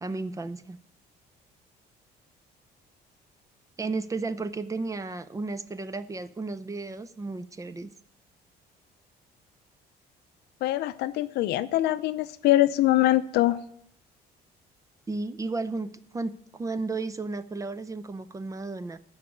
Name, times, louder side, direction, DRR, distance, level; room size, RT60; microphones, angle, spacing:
voice 1, 0.0-0.8 3.8-7.9 15.1-19.0, right 3 dB, 20° right, 14 dB, 0.5 m, -33 dB
voice 2, 10.6-13.6, left 15 dB, 75° left, 14 dB, 0.6 m, -23 dB
12.5 x 4.8 x 8.4 m, 0.72 s
cardioid pair, 110°, 17 cm